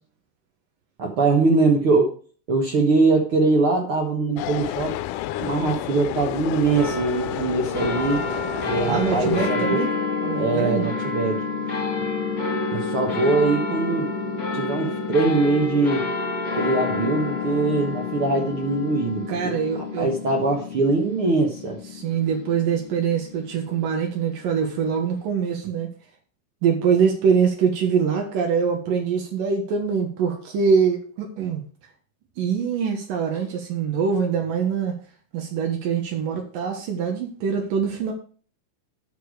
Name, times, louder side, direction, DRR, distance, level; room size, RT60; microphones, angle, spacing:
voice 1, 1.0-2.1 2.5-5.0 5.4-8.2 8.7-9.8 10.3-11.4 12.7-14.1 14.5-16.0 16.6-21.8, right 3 dB, 55° right, 1 dB, 1.7 m, -22 dB
sound 1, 4.4-9.5, left 14 dB, 80° left, 1.9 m, -30 dB
sound 2, 6.7-23.5, left 4 dB, 30° left, 2.6 m, -29 dB
voice 2, 8.8-9.9 10.2-10.9 19.3-20.1 21.9-25.9 26.6-31.6 32.4-34.9 35.3-38.1, right 6 dB, 90° right, 2 dB, 3.1 m, -24 dB
10.0 x 7.0 x 4.9 m, 0.42 s
omnidirectional pair, 3.8 m